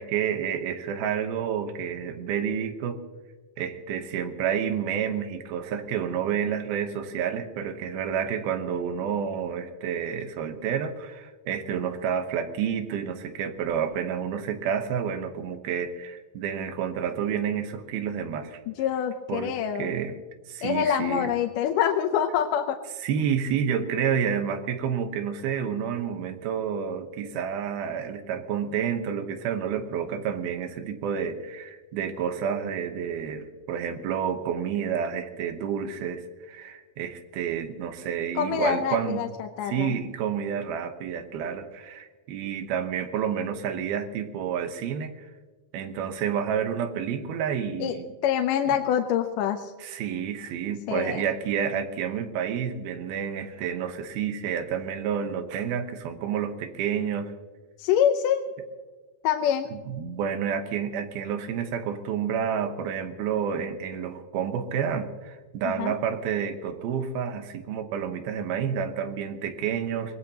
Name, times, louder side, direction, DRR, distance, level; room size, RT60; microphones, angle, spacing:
voice 1, 0.0-3.0 3.6-18.6 19.3-20.2 20.5-21.3 23.0-39.3 39.6-45.3 45.7-48.0 48.7-48.8 49.8-57.3 59.7-70.2, right 8 dB, 80° right, 8 dB, 2.9 m, -29 dB
voice 2, 18.7-19.9 20.6-22.8 38.4-39.9 47.8-47.9 48.2-49.7 50.9-51.2 57.8-58.4 59.2-59.7 65.8-66.0, left 9 dB, 75° left, 5 dB, 2.1 m, -25 dB
24.0 x 18.5 x 2.9 m, 1.4 s
omnidirectional pair, 4.3 m